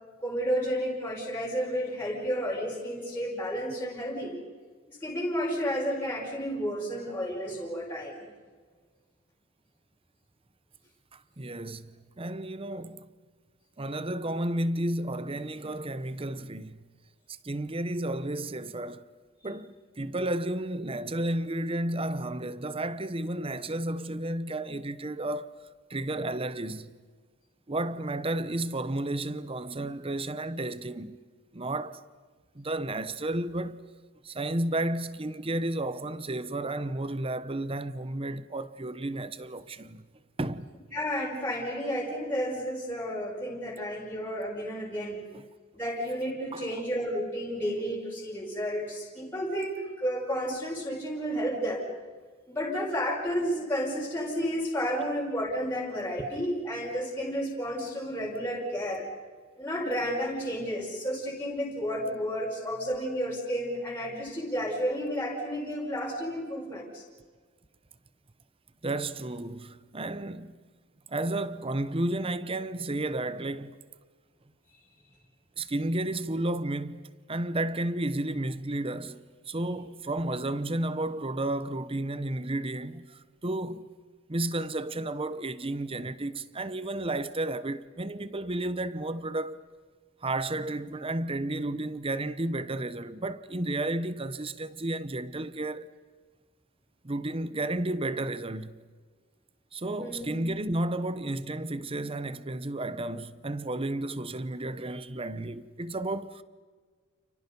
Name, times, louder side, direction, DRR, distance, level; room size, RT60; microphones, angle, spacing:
voice 1, 0.2-4.3 4.9-8.3 40.9-45.2 45.7-51.8 52.5-59.1 59.6-67.0 100.0-100.4, equal, 10° left, 5.5 m, -31 dB
voice 2, 11.1-13.1 13.8-16.8 17.4-19.0 19.4-25.5 25.9-26.9 27.7-31.2 31.5-32.0 32.5-33.8 34.2-40.0 40.4-40.7 45.3-45.5 46.5-46.7 56.2-56.3 68.8-70.6 71.1-73.8 75.6-83.9 84.3-89.6 90.2-95.9 97.0-98.8 99.7-106.4, right 1 dB, 25° right, 0.9 m, -32 dB
30.0 x 29.5 x 5.4 m
head